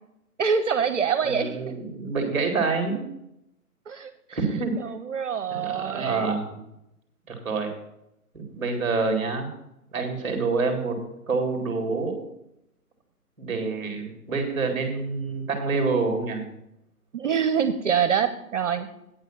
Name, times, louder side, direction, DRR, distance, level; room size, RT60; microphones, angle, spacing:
voice 1, 0.4-1.8 3.9-4.4 4.8-6.4 17.1-18.9, right 7 dB, 50° right, 10 dB, 0.7 m, -25 dB
voice 2, 1.2-3.0 4.3-4.8 5.5-6.6 7.3-7.7 8.3-9.5 9.9-11.0 11.3-12.1 13.4-16.4, right 4 dB, 5° right, 3 dB, 1.6 m, -27 dB
8.9 x 5.6 x 7.1 m, 0.83 s
hypercardioid pair, 165°, 45 cm